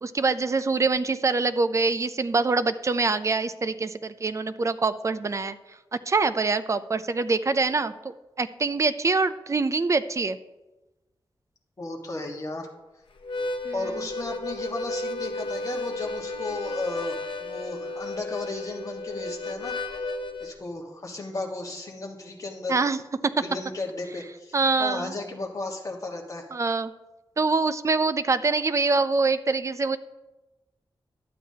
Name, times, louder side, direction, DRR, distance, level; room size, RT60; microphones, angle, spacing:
voice 1, 0.0-5.6 5.9-10.4 13.6-13.7 22.7-23.3 24.5-25.1 26.5-26.9 27.4-30.0, right 3 dB, 35° right, 13 dB, 0.4 m, -25 dB
voice 2, 11.8-12.7 13.7-19.8 20.4-22.8 23.4-26.5, left 2 dB, 35° left, 0 dB, 1.5 m, -34 dB
Harmonica, 13.2-20.5, left 2 dB, 70° left, 0.7 m, -33 dB
12.0 x 8.5 x 2.8 m, 1.1 s
wide cardioid pair, 125°, 9 cm